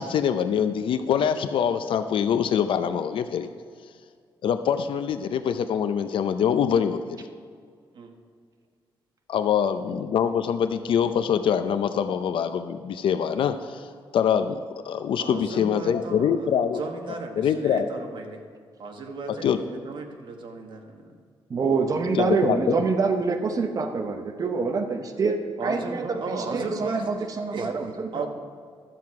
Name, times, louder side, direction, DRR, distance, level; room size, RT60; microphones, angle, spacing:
voice 1, 0.0-3.5 4.4-7.3 9.3-16.8 17.4-17.9 19.3-19.6 22.1-22.8, left 8 dB, 70° left, 10 dB, 0.5 m, -24 dB
voice 2, 15.2-18.4 18.8-21.1 25.6-27.1 27.5-27.7 28.1-28.3, right 3 dB, 60° right, 3 dB, 1.3 m, -35 dB
voice 3, 21.5-26.2 26.5-28.3, right 4 dB, 40° right, 5 dB, 0.8 m, -26 dB
12.5 x 7.6 x 4.8 m, 2.1 s
cardioid pair, 135°, 9 cm